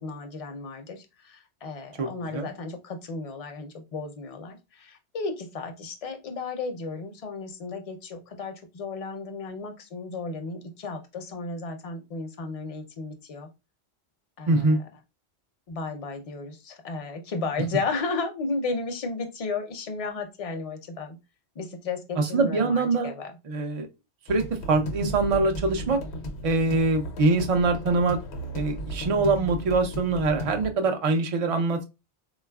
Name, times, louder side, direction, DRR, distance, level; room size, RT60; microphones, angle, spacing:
voice 1, 0.0-13.5 14.4-14.8 15.7-21.2 21.6-23.3, left 3 dB, 45° left, 5 dB, 0.5 m, -34 dB
voice 2, 2.0-2.5 14.5-14.8 22.2-23.1 23.5-23.9 24.3-26.0 26.4-28.2 28.5-31.8, right 3 dB, 60° right, 4 dB, 0.3 m, -24 dB
sound 1, 24.3-30.7, equal, 80° left, 0.9 m, -35 dB
3.9 x 2.3 x 2.2 m, 0.25 s
omnidirectional pair, 1.1 m